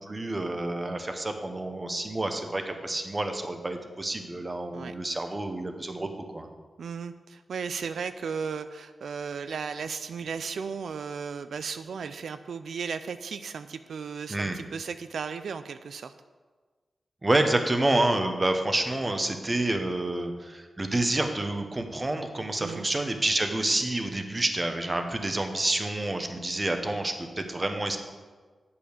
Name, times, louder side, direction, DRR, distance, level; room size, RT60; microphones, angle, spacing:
voice 1, 0.0-6.5 14.3-14.6 17.2-28.0, right 2 dB, 25° right, 6 dB, 0.9 m, -28 dB
voice 2, 6.8-16.1 22.6-22.9, right 6 dB, 90° right, 11 dB, 0.3 m, -35 dB
8.6 x 5.6 x 6.5 m, 1.4 s
wide cardioid pair, 90°, 0 cm